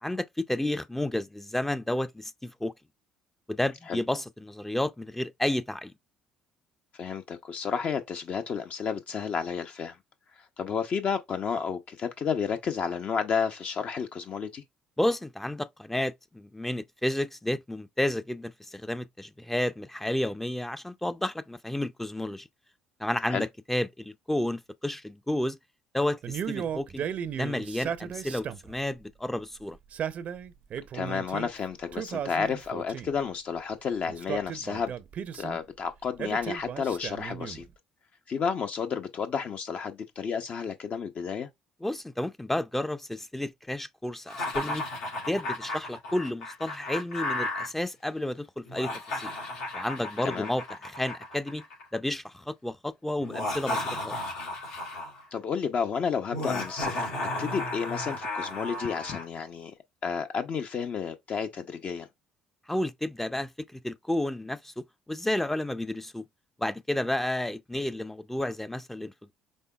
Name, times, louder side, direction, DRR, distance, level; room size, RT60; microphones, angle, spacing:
voice 1, 0.0-2.7 3.5-5.9 15.0-22.5 23.0-25.6 25.9-27.0 27.3-29.8 41.8-44.8 45.3-49.3 49.7-51.6 51.9-54.2 62.7-66.2 66.6-69.3, left 1 dB, 10° left, 0.4 m, -31 dB
voice 2, 6.9-10.0 10.6-14.6 23.3-23.5 30.9-34.9 35.4-37.6 38.3-41.5 50.2-50.5 55.3-57.1 57.4-59.7 60.0-62.1, left 6 dB, 50° left, 0.7 m, -31 dB
Male speech man speaking, 26.2-28.8 29.7-31.5 31.9-33.2 34.1-35.6 36.2-37.7, right 8 dB, 55° right, 0.5 m, -35 dB
Laughter, 44.3-47.7 48.6-52.0 53.2-55.2 56.3-59.3, left 2 dB, 80° left, 3.2 m, -34 dB
5.4 x 3.7 x 2.3 m
hypercardioid pair, 65°, 3 cm